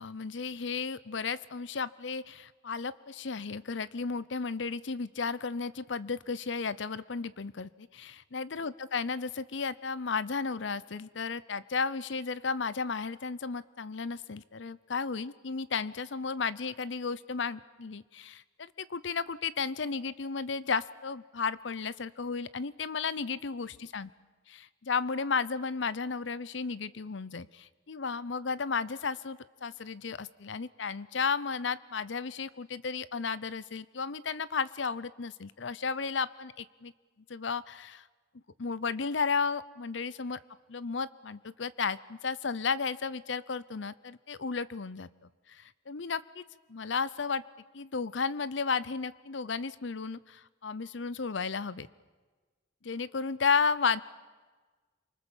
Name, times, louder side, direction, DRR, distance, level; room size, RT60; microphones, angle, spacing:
voice 1, 0.0-24.1 24.5-36.9 37.3-38.0 38.6-40.4 40.7-47.4 47.7-51.9 52.8-54.0, left 5 dB, 70° left, 18 dB, 0.7 m, -33 dB
27.0 x 24.5 x 7.3 m, 1.3 s
head